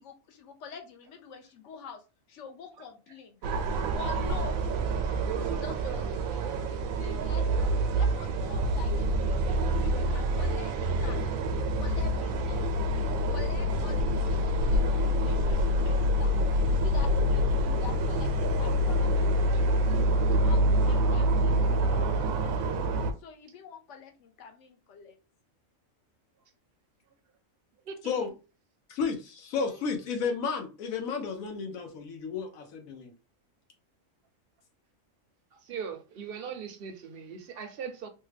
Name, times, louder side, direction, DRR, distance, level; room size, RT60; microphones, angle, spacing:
voice 1, 0.0-2.0 2.3-3.4 3.9-4.7 5.4-10.7 11.0-11.2 11.8-12.7 13.3-16.3 16.7-20.1 20.4-21.6 23.2-25.2, left 6 dB, 65° left, 1.0 m, -46 dB
sound 1, 3.4-23.1, equal, 90° right, 1.0 m, -26 dB
voice 2, 28.9-33.1, left 5 dB, 90° left, 1.2 m, -32 dB
voice 3, 35.5-38.1, right 6 dB, 60° right, 0.6 m, -39 dB
3.3 x 2.2 x 3.2 m
omnidirectional pair, 1.4 m